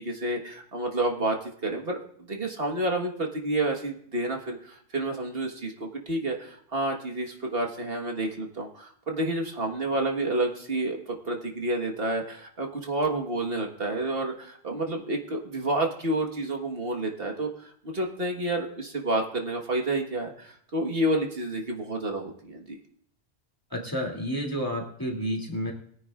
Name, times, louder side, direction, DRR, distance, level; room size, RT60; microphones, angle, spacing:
voice 1, 0.0-2.0 2.3-22.8, right 2 dB, 65° right, 2 dB, 1.7 m, -29 dB
voice 2, 23.7-25.7, equal, 20° left, 0 dB, 2.6 m, -30 dB
21.5 x 9.9 x 2.5 m, 0.64 s
omnidirectional pair, 1.1 m